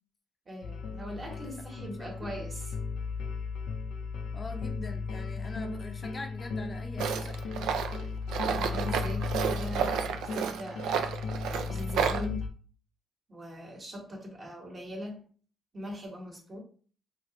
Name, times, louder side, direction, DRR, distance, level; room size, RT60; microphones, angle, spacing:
voice 1, 0.5-2.8 8.5-11.0 11.5-12.4 13.3-15.2 15.7-16.6, equal, 35° right, 0 dB, 1.2 m, -41 dB
sound 1, 0.6-12.5, left 4 dB, 80° left, 0.5 m, -36 dB
voice 2, 1.7-2.5 4.3-7.8, left 3 dB, 30° left, 4 dB, 0.5 m, -43 dB
Tools, 7.0-12.2, right 7 dB, 85° right, 0.4 m, -31 dB
3.4 x 2.8 x 2.9 m, 0.42 s
cardioid pair, 90°, 0 cm